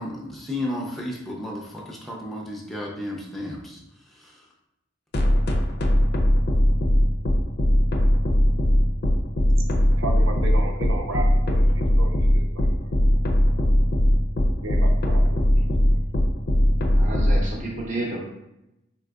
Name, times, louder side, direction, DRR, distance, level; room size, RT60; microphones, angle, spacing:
voice 1, 0.0-4.5, left 1 dB, ahead, -2 dB, 0.5 m, -33 dB
sound 1, 5.1-17.4, left 1 dB, 50° left, 0.5 m, -19 dB
voice 2, 10.0-11.6 12.0-12.1 12.3-12.4 14.6-15.2, right 2 dB, 70° right, 2 dB, 0.7 m, -32 dB
voice 3, 16.9-18.2, right 1 dB, 35° right, -2 dB, 0.8 m, -30 dB
4.1 x 3.7 x 2.3 m, 0.90 s
head